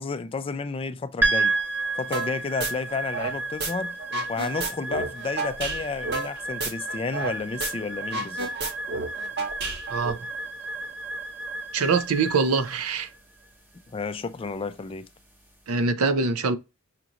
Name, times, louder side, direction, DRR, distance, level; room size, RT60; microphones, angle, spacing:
voice 1, 0.0-1.5 2.0-4.0 4.3-8.5 13.9-15.0, left 4 dB, 25° left, 0.3 m, -31 dB
sound 1, 1.2-15.6, right 3 dB, 10° right, 0.8 m, -32 dB
sound 2, 2.1-2.3 2.6-3.7 4.0-7.3 7.6-7.7 8.0-10.1, right 3 dB, 50° right, 1.1 m, -31 dB
voice 2, 11.7-13.1 15.7-16.6, right 4 dB, 80° right, 0.5 m, -24 dB
5.8 x 2.5 x 2.8 m
head